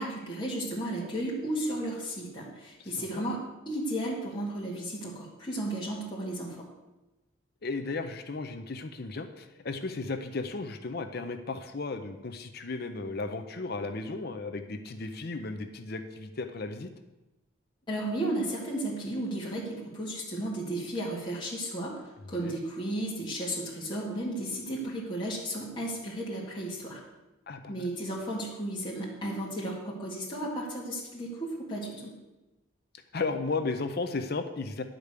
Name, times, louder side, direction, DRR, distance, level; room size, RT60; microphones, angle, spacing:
voice 1, 0.0-6.7 17.9-22.0 22.3-27.0 27.7-32.2, right 1 dB, 20° left, -5 dB, 1.9 m, -34 dB
voice 2, 2.8-3.3 7.6-16.9 22.4-22.6 27.5-27.8 33.1-34.8, left 3 dB, 50° left, 8 dB, 0.6 m, -35 dB
10.5 x 5.1 x 8.2 m, 1.0 s
head